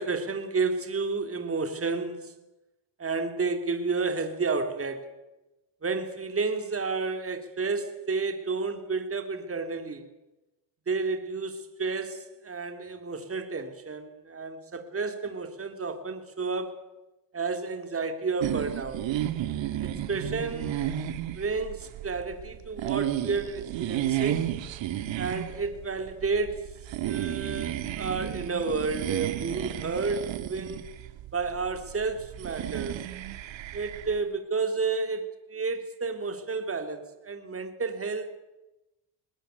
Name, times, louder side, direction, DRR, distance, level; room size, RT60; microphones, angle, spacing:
voice 1, 0.0-2.3 3.0-5.1 5.8-10.0 10.9-16.7 17.3-19.0 19.8-20.9 21.3-24.5 25.2-26.7 27.1-30.8 31.3-33.0 33.7-38.3, right 4 dB, 25° right, 7 dB, 3.2 m, -31 dB
sound 1, 18.4-34.2, right 12 dB, 65° right, 2.0 m, -33 dB
21.0 x 20.0 x 9.2 m, 1.0 s
supercardioid pair, 90°, 49 cm